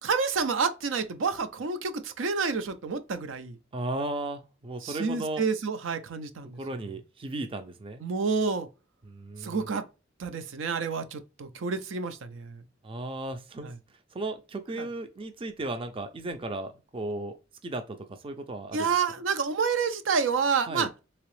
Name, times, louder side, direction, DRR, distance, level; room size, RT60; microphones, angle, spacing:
voice 1, 0.0-3.6 4.8-6.6 8.0-8.7 9.4-9.8 10.2-12.6 13.6-13.7 14.8-14.9 18.7-20.9, right 5 dB, 80° right, 0.5 m, -29 dB
voice 2, 3.7-5.4 6.6-8.0 9.0-9.7 12.8-13.7 14.1-17.3 17.6-19.0 20.7-20.9, right 2 dB, 30° right, 0.4 m, -35 dB
3.6 x 2.9 x 3.1 m
head